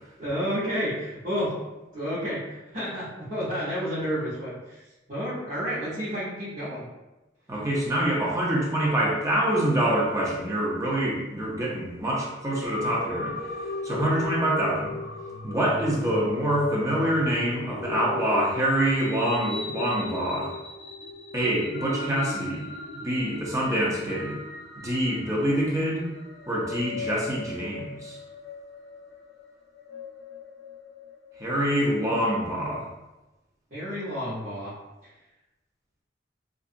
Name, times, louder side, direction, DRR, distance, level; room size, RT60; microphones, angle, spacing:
voice 1, 0.2-1.5 1.9-4.8 5.1-6.9 33.7-34.7, equal, 45° right, -14 dB, 0.9 m, -30 dB
voice 2, 7.5-13.3 13.8-15.0 15.4-20.5 21.3-22.7 22.9-24.4 24.8-26.1 26.5-28.2 31.4-32.9, right 1 dB, 20° right, -5 dB, 0.6 m, -26 dB
sound 1, 12.6-32.2, left 3 dB, 80° left, 0.4 m, -37 dB
2.7 x 2.4 x 2.4 m, 1.0 s
head